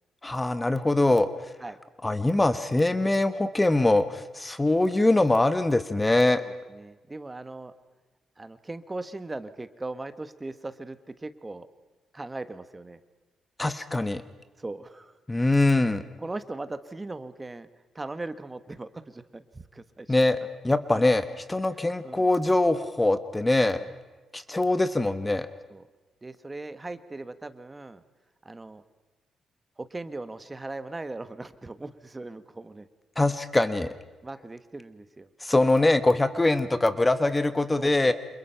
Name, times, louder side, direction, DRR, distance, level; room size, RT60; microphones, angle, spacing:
voice 1, 0.2-1.3 2.0-6.4 13.6-14.2 15.3-16.0 20.1-20.4 20.6-23.8 24.3-25.5 33.2-33.9 35.4-38.1, left 2 dB, 15° left, 11 dB, 1.1 m, -23 dB
voice 2, 6.7-7.7 8.4-11.7 12.1-13.0 14.6-15.4 16.2-17.7 17.9-20.2 20.9-21.0 22.0-22.3 23.7-23.9 25.7-25.9 26.2-28.0 28.4-28.8 29.8-32.9 34.2-35.3 37.8-38.1, right 2 dB, 15° right, 11 dB, 1.4 m, -39 dB
29.0 x 27.5 x 5.7 m, 1.3 s
cardioid pair, 120°, 0 cm